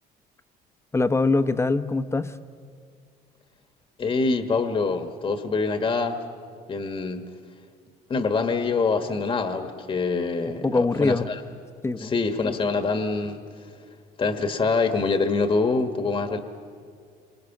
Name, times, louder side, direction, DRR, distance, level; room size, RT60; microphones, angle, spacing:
voice 1, 0.9-2.3 10.6-11.3 11.8-12.1, left 3 dB, 15° left, 10 dB, 1.0 m, -23 dB
voice 2, 4.0-6.2 6.7-7.2 8.1-11.4 12.0-13.4 14.2-16.4, left 4 dB, 30° left, 6 dB, 1.5 m, -25 dB
29.0 x 26.0 x 6.0 m, 2.1 s
cardioid pair, 110°, 17 cm